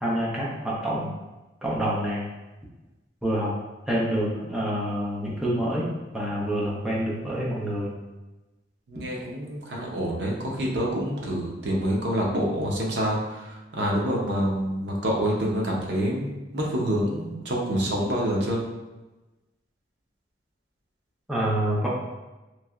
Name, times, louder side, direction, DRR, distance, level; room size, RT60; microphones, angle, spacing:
voice 1, 0.0-1.1 1.6-2.2 3.2-3.5 3.9-7.9 21.3-21.9, equal, 5° right, -6 dB, 0.7 m, -27 dB
voice 2, 8.9-18.6, equal, 70° right, -2 dB, 0.7 m, -27 dB
3.1 x 2.7 x 2.4 m, 1.1 s
head